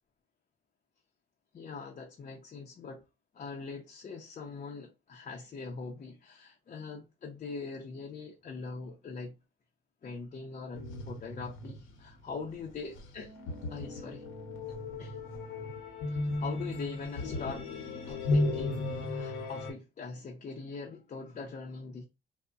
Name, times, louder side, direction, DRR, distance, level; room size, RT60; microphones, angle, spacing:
voice 1, 1.5-3.0 3.3-9.3 10.0-13.4 13.7-14.3 15.0-15.2 16.1-17.7 18.1-22.1, left 4 dB, 40° left, 0.6 m, -42 dB
sound 1, 10.7-19.7, left 2 dB, 90° left, 0.8 m, -35 dB
3.7 x 2.1 x 2.3 m
cardioid pair, 90°, 20 cm